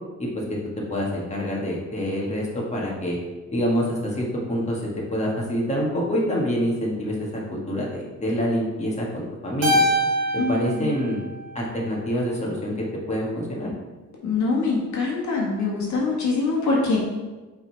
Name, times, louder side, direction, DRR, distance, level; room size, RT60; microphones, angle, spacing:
voice 1, 0.9-3.2 3.5-4.8 5.1-9.8 10.5-11.2 11.5-12.7 13.1-13.7, equal, 20° left, -3 dB, 1.6 m, -26 dB
Keyboard (musical), 9.6-12.1, equal, 55° right, 1.7 m, -25 dB
voice 2, 10.4-11.0 14.2-17.0, left 3 dB, 65° left, -3 dB, 1.6 m, -24 dB
5.8 x 3.8 x 4.6 m, 1.2 s
cardioid pair, 90°, 30 cm